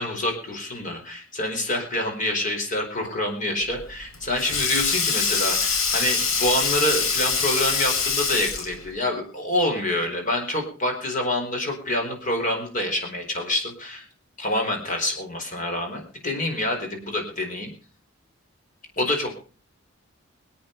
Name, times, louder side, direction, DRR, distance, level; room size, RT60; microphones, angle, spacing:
voice 1, 0.0-14.0 14.4-17.7 19.0-19.3, left 1 dB, 40° left, 2 dB, 4.5 m, -27 dB
Sink (filling or washing), 3.7-8.9, left 5 dB, 80° left, 3.5 m, -24 dB
24.0 x 8.9 x 5.3 m, 0.37 s
head